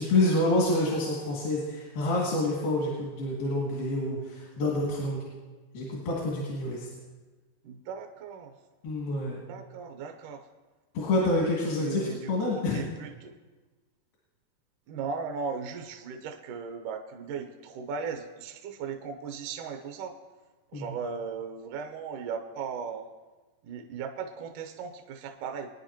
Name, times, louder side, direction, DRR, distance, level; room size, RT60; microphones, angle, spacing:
voice 1, 0.0-5.2 5.7-6.9 8.8-9.4 10.9-12.8 20.7-20.9, left 2 dB, 80° left, -5 dB, 4.0 m, -27 dB
voice 2, 7.6-8.5 9.5-10.5 11.8-13.3 14.9-20.2 20.7-23.1 23.6-25.7, right 6 dB, 75° right, 4 dB, 2.0 m, -37 dB
23.0 x 9.8 x 2.9 m, 1.3 s
omnidirectional pair, 4.4 m